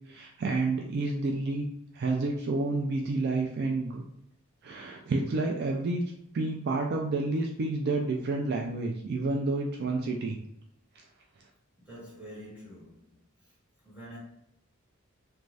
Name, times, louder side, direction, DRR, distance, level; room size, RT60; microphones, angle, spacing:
voice 1, 0.1-1.7 1.9-4.1 4.6-6.0 6.3-10.4, right 3 dB, 50° right, 0.3 m, -29 dB
voice 2, 11.8-13.5 13.8-14.2, equal, 5° right, 1.3 m, -47 dB
2.5 x 2.2 x 3.2 m
head